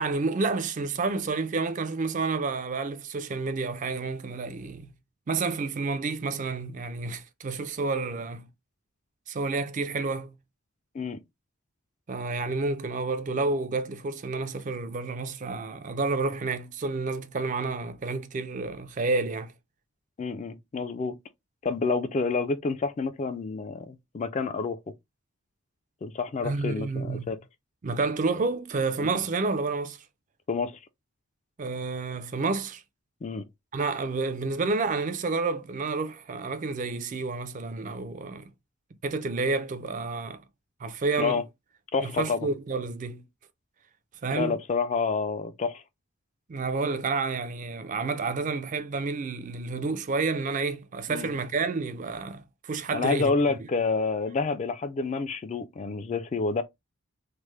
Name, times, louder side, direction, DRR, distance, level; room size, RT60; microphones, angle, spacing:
voice 1, 0.0-4.9 5.3-8.5 9.3-10.3 12.1-19.5 26.4-27.3 27.8-30.0 31.6-32.8 33.7-38.5 39.0-40.4 40.8-41.4 42.0-43.3 44.2-44.5 46.5-53.7, right 3 dB, 35° right, 0.4 m, -30 dB
voice 2, 20.2-21.2 21.6-24.8 26.0-27.4 29.0-29.1 30.5-30.8 33.2-33.4 41.2-41.4 41.9-42.5 44.3-45.8 51.1-51.3 52.9-56.6, left 4 dB, 35° left, 0.3 m, -28 dB
3.3 x 2.0 x 3.0 m
head